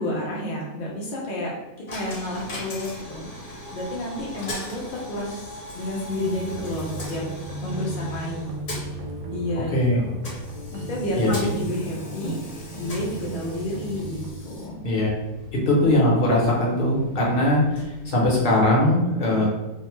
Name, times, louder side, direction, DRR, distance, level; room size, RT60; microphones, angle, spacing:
voice 1, 0.0-1.5 1.9-7.2 7.6-8.6 9.3-10.2 10.7-14.2 14.4-14.9 19.3-19.4, left 1 dB, 75° left, -3 dB, 0.4 m, -31 dB
Coin (dropping), 1.9-18.8, left 1 dB, 60° left, 1.1 m, -40 dB
sound 1, 6.1-14.3, right 2 dB, 80° right, 1.0 m, -35 dB
voice 2, 11.1-11.5 14.8-15.1 15.7-19.5, left 1 dB, 40° left, -4 dB, 0.8 m, -20 dB
2.6 x 2.1 x 3.0 m, 1.1 s
omnidirectional pair, 1.6 m